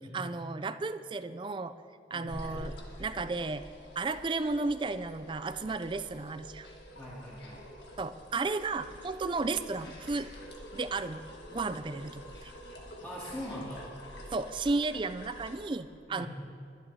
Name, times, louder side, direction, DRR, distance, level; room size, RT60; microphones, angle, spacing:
voice 1, 0.1-1.7 2.1-2.7 3.0-3.6 4.0-6.7 8.0-10.3 10.7-11.2 11.5-12.5 14.3-16.3, right 3 dB, 30° right, 11 dB, 0.4 m, -33 dB
sound 1, 2.3-15.7, equal, 75° left, 1.6 m, -47 dB
voice 2, 6.9-7.6 13.0-13.9 16.1-16.3, equal, 10° left, -9 dB, 2.4 m, -41 dB
21.5 x 11.5 x 2.8 m, 2.3 s
head